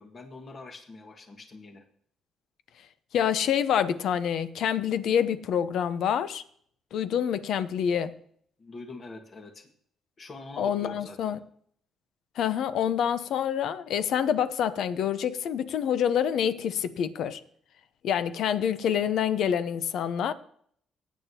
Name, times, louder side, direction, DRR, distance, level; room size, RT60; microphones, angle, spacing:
voice 1, 0.0-1.8 8.6-9.7 10.2-11.3, left 3 dB, 40° left, 1.7 m, -44 dB
voice 2, 3.1-6.4 6.9-8.1 10.6-11.4 12.4-17.4 18.0-20.3, left 8 dB, 75° left, 0.7 m, -27 dB
18.0 x 9.3 x 2.9 m
cardioid pair, 90°, 0 cm